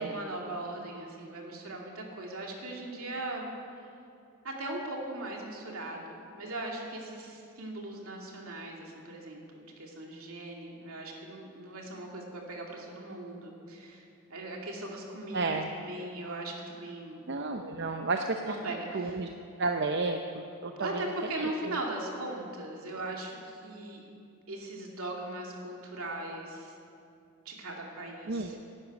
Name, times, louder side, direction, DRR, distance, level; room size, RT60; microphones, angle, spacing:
voice 1, 0.0-3.5 4.4-17.2 18.4-19.2 20.8-24.1 24.5-26.7 27.4-28.6, right 2 dB, 70° right, -1 dB, 2.6 m, -39 dB
voice 2, 15.3-15.7 17.3-18.5 18.9-19.3 19.6-21.0 21.4-21.5 28.3-28.6, right 3 dB, 50° right, 4 dB, 0.7 m, -31 dB
12.0 x 11.0 x 9.1 m, 2.5 s
head